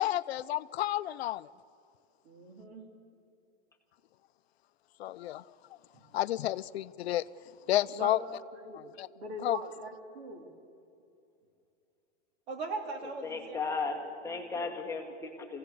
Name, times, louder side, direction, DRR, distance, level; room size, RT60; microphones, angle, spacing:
voice 1, 0.0-1.5 5.0-5.4 6.1-7.2 7.7-8.2 8.7-9.1 9.4-9.6, left 14 dB, 65° left, 16 dB, 0.5 m, -30 dB
voice 2, 2.2-2.9 5.9-6.1 7.9-8.2 8.5-8.8 9.1-10.5 12.5-13.9 14.2-14.8, right 3 dB, 65° right, 4 dB, 3.3 m, -41 dB
voice 3, 13.2-15.6, left 4 dB, 10° left, 1 dB, 1.1 m, -36 dB
24.0 x 16.5 x 6.9 m, 2.6 s
supercardioid pair, 165°, 34 cm